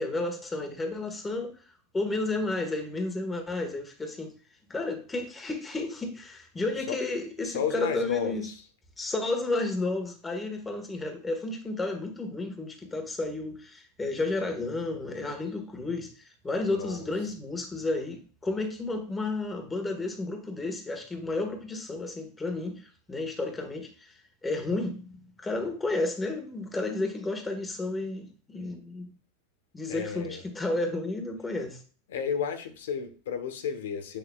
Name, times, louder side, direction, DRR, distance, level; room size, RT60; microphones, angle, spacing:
voice 1, 0.0-1.6 1.9-4.3 4.7-8.5 9.0-29.1 29.7-31.8, left 2 dB, 15° left, 1.6 m, -32 dB
voice 2, 7.4-8.6 16.7-17.1 29.9-30.4 32.1-34.2, left 7 dB, 90° left, 1.1 m, -32 dB
7.9 x 6.7 x 2.4 m
supercardioid pair, 130°, 0 cm